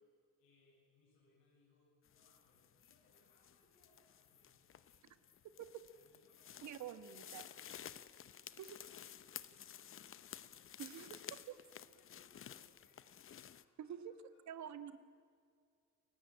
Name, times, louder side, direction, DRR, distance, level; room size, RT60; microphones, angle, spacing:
voice 1, 0.4-5.3 5.9-10.1 10.5-14.4, left 2 dB, 90° left, -3 dB, 7.3 m, -74 dB
sound 1, 2.1-13.6, left 9 dB, 40° left, 0.8 m, -54 dB
voice 2, 6.6-7.5 8.6-8.8 10.8-11.2 11.5-11.6 13.8-14.1 14.5-15.0, right 9 dB, 55° right, 11 dB, 1.5 m, -47 dB
28.5 x 16.0 x 8.7 m, 2.2 s
cardioid pair, 120°, 33 cm